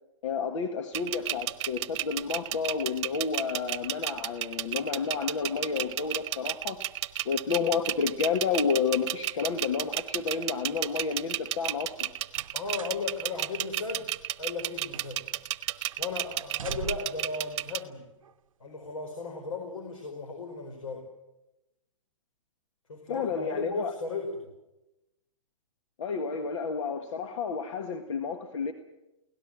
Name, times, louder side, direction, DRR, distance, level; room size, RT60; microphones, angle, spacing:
voice 1, 0.2-6.8 7.2-12.1 23.1-23.9 26.0-28.7, left 5 dB, 65° left, 6 dB, 1.8 m, -30 dB
sound 1, 0.9-17.8, right 13 dB, 55° right, 1.0 m, -32 dB
sound 2, 12.3-13.0 13.4-13.6 14.3-15.3 15.6-16.0 16.4-17.3 18.2-18.3, right 8 dB, 80° right, 0.7 m, -42 dB
voice 2, 12.5-14.1 14.4-15.2 16.0-18.1 18.6-21.1 22.9-24.5, left 4 dB, 80° left, 3 dB, 4.6 m, -36 dB
23.5 x 17.5 x 7.6 m, 0.97 s
hypercardioid pair, 130°, 17 cm